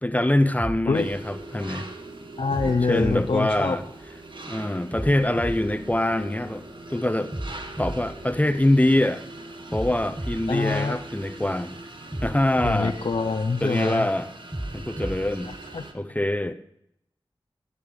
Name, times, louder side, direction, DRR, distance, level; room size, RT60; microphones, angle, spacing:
voice 1, 0.0-1.9 2.6-3.8 4.5-6.6 6.9-7.3 7.8-9.2 9.7-11.8 12.2-13.0 13.6-14.3 14.7-15.5 15.9-16.5, left 1 dB, 15° left, 11 dB, 0.9 m, -24 dB
sound 1, 0.6-1.9 2.5-4.2 4.9-6.7 7.3-9.1 9.7-11.5 12.1-13.8 14.5-15.9, right 1 dB, 25° right, 5.0 m, -36 dB
sound 2, 0.9-15.9, right 2 dB, 55° right, 1.5 m, -41 dB
voice 2, 2.4-3.8 10.5-11.0 12.6-14.1 15.4-15.8, left 4 dB, 70° left, 4 dB, 0.8 m, -25 dB
18.0 x 6.9 x 5.2 m, 0.77 s
cardioid pair, 45°, 10 cm